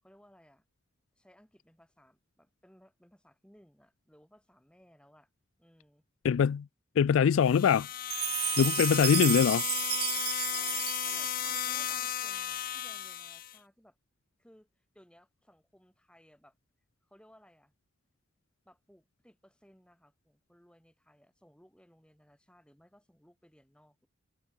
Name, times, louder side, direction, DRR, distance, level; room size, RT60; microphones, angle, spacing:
voice 1, 0.0-0.7 1.1-5.3 5.6-6.0 10.5-14.0 14.4-16.6 17.0-17.7 18.6-24.1, equal, 5° left, 7.8 m, -61 dB
voice 2, 6.2-6.7 7.0-7.9 8.6-9.6, left 7 dB, 80° left, 0.3 m, -23 dB
sound 1, 7.4-13.6, left 11 dB, 45° left, 0.7 m, -35 dB
Chime, 8.1-12.3, right 15 dB, 50° right, 1.1 m, -34 dB
head